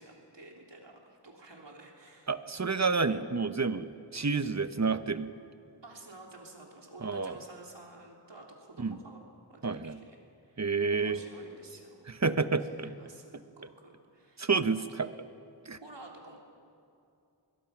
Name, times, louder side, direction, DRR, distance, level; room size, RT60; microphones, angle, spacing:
voice 1, 0.0-2.3 5.8-9.2 9.5-12.2 12.8-14.5 14.8-15.0 15.8-16.4, right 2 dB, 70° right, 0 dB, 3.5 m, -51 dB
voice 2, 2.3-5.3 7.0-7.4 8.8-9.0 9.6-10.0 10.6-11.2 12.1-12.9 14.4-15.1 15.7-15.8, right 4 dB, 40° right, 11 dB, 1.0 m, -29 dB
23.0 x 21.5 x 6.0 m, 2.6 s
wide cardioid pair, 55°, 44 cm